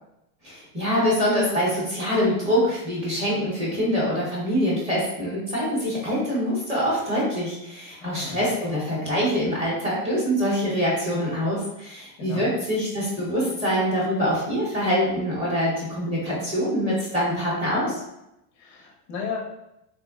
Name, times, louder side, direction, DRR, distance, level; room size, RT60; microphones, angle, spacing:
voice 1, 0.4-18.0, equal, 15° right, -6 dB, 0.8 m, -24 dB
voice 2, 8.0-8.4 12.2-12.5 18.5-19.4, left 5 dB, 25° left, -1 dB, 0.4 m, -34 dB
3.4 x 2.0 x 3.5 m, 0.88 s
supercardioid pair, 175°, 45 cm